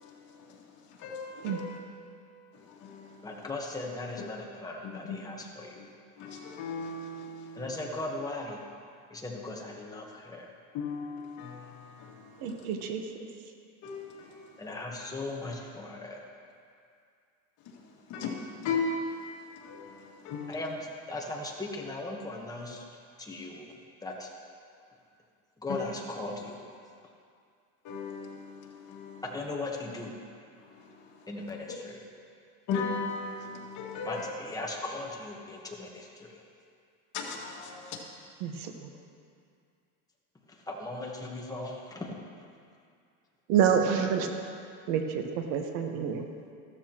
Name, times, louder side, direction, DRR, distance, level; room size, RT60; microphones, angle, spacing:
voice 1, 1.0-1.8 2.8-3.1 5.1-5.2 6.2-7.6 10.7-11.7 13.8-14.3 18.1-18.4 18.6-19.2 19.6-20.5 25.7-25.9 27.8-29.2 32.7-34.3 37.1-38.0, left 4 dB, 55° left, -3 dB, 2.4 m, -36 dB
voice 2, 3.2-5.8 7.6-8.6 9.1-10.5 14.6-16.2 20.5-20.8 21.1-22.8 23.2-23.7 24.0-24.3 25.6-26.6 29.2-30.2 31.3-32.0 34.0-36.4 40.5-42.1, left 2 dB, 10° left, -1 dB, 1.3 m, -38 dB
voice 3, 12.4-13.0 38.4-38.5 43.5-44.3 44.9-45.2 45.5-46.2, right 8 dB, 75° right, 4 dB, 1.4 m, -27 dB
14.5 x 12.5 x 3.0 m, 2.3 s
cardioid pair, 150°, 35 cm